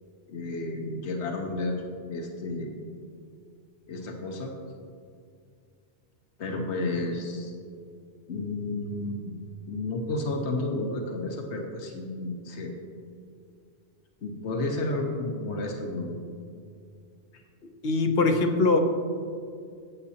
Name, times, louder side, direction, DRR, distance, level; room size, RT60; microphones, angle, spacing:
voice 1, 0.3-1.8 2.1-2.7 3.9-4.5 6.4-7.5 8.3-9.2 9.7-12.7 14.2-16.2, left 2 dB, 80° left, 2 dB, 1.3 m, -31 dB
voice 2, 17.8-18.8, left 3 dB, 60° left, 5 dB, 1.0 m, -22 dB
15.0 x 8.4 x 2.8 m, 2.3 s
omnidirectional pair, 1.2 m